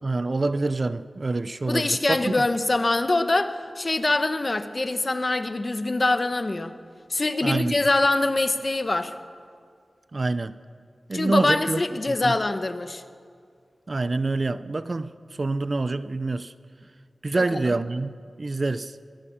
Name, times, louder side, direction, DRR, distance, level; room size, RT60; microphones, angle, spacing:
voice 1, 0.0-2.4 7.4-7.7 10.1-10.5 11.1-11.8 12.1-12.4 13.9-15.1 15.4-16.5 17.2-18.1 18.4-18.9, right 3 dB, 45° right, 0.6 m, -26 dB
voice 2, 1.7-6.7 7.1-9.1 11.1-13.0 17.4-17.7, left 2 dB, 35° left, 1.1 m, -24 dB
23.0 x 16.0 x 7.2 m
wide cardioid pair, 105°, 0 cm